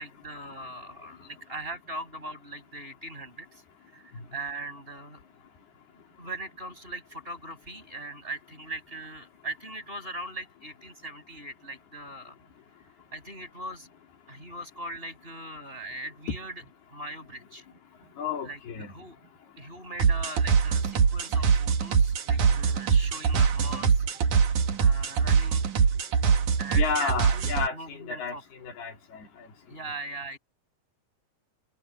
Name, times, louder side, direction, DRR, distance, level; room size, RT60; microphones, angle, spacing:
voice 1, 0.0-3.6 3.9-5.2 6.2-12.4 13.1-13.9 14.3-16.5 16.9-17.7 18.4-19.2 19.6-24.2 24.8-25.7 26.6-28.4 29.7-30.4, right 2 dB, 15° right, 7.2 m, -40 dB
voice 2, 18.2-18.9 22.5-22.6 26.7-29.3, left 5 dB, 80° left, 5.6 m, -32 dB
sound 1, 20.0-27.7, right 6 dB, 55° right, 3.1 m, -23 dB
omnidirectional pair, 4.5 m